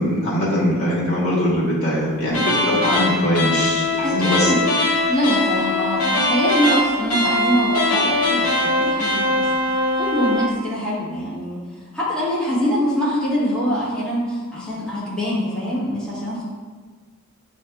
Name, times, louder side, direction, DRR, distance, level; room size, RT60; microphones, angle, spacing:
voice 1, 0.0-4.5, equal, 65° left, -8 dB, 1.4 m, -21 dB
sound 1, 2.3-10.6, left 2 dB, 85° left, 0.7 m, -21 dB
voice 2, 4.0-4.6 5.1-9.5 10.0-11.6 11.9-16.4, equal, 5° left, -11 dB, 1.1 m, -23 dB
7.2 x 2.8 x 2.3 m, 1.4 s
head